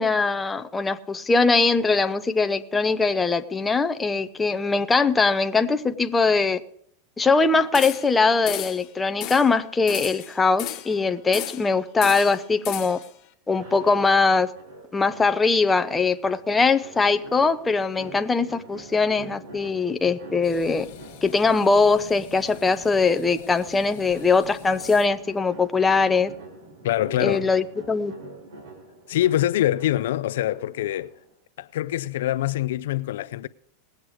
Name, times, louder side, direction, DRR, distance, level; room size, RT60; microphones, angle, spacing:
voice 1, 0.0-6.6 7.2-13.0 13.5-14.5 14.9-20.9 21.2-26.3 27.2-28.1, left 4 dB, 10° left, 0.6 m, -21 dB
sound 1, 7.7-8.2 8.5-8.9 9.2-9.5 9.9-11.0 11.3-11.7 12.0-13.1, left 14 dB, 40° left, 1.0 m, -34 dB
sound 2, 13.5-31.3, right 2 dB, 75° right, 5.4 m, -45 dB
sound 3, 20.4-25.3, left 11 dB, 60° left, 1.4 m, -45 dB
voice 2, 26.8-27.5 29.1-31.1 31.6-33.5, left 13 dB, 80° left, 0.5 m, -24 dB
19.5 x 8.0 x 4.9 m
supercardioid pair, 150°, 0 cm